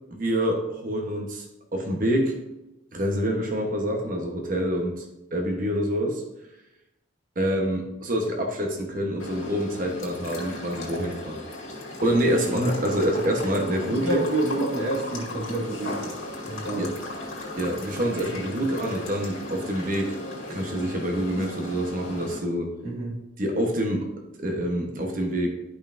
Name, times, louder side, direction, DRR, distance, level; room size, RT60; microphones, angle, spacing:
voice 1, 0.1-1.4 1.7-2.4 2.9-5.0 5.3-6.2 7.4-11.4 12.0-14.2 16.8-16.9 17.6-20.1 20.5-22.7 23.4-24.1 24.4-25.5, equal, 45° right, 1 dB, 1.0 m, -26 dB
sound 1, 9.2-22.4, left 2 dB, 90° left, 2.0 m, -36 dB
voice 2, 13.9-16.1 16.5-16.9 22.8-23.2, right 2 dB, 75° right, -3 dB, 2.1 m, -28 dB
11.5 x 5.5 x 2.6 m, 0.93 s
head